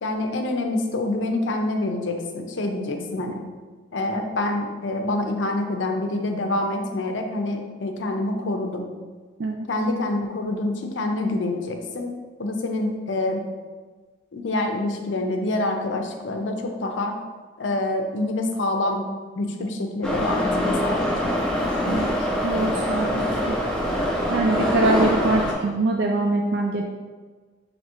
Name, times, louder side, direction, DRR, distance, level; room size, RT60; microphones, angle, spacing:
voice 1, 0.0-3.4 3.9-8.9 9.7-12.1 12.4-13.4 14.3-17.2 17.6-19.1 19.4-21.3, left 2 dB, 80° left, 4 dB, 0.5 m, -26 dB
Subway metro underground, 20.0-25.5, equal, 5° left, 0.6 m, -24 dB
voice 2, 22.4-23.6 24.3-26.8, right 2 dB, 60° right, 1 dB, 0.3 m, -23 dB
5.4 x 2.8 x 2.9 m, 1.4 s
head